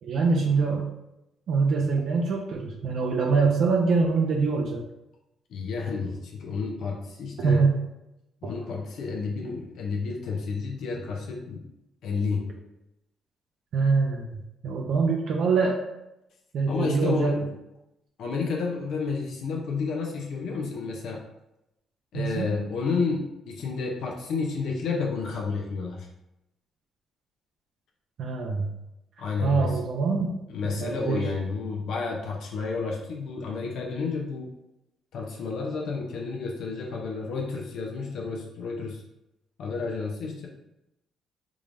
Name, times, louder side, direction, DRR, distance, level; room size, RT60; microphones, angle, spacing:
voice 1, 0.0-0.9 1.5-4.8 7.4-7.7 8.4-8.5 13.7-15.8 16.5-17.4 22.1-22.6 28.2-28.7 29.4-30.4 30.6-31.2, right 4 dB, 65° right, 0 dB, 0.5 m, -24 dB
voice 2, 5.5-7.6 8.4-11.6 12.0-12.5 16.7-17.5 18.2-21.2 22.1-26.1 29.2-29.8 30.5-34.5 35.1-39.0 39.6-40.5, left 4 dB, 75° left, 0 dB, 0.6 m, -31 dB
3.6 x 3.2 x 2.5 m, 0.87 s
cardioid pair, 90°, 0 cm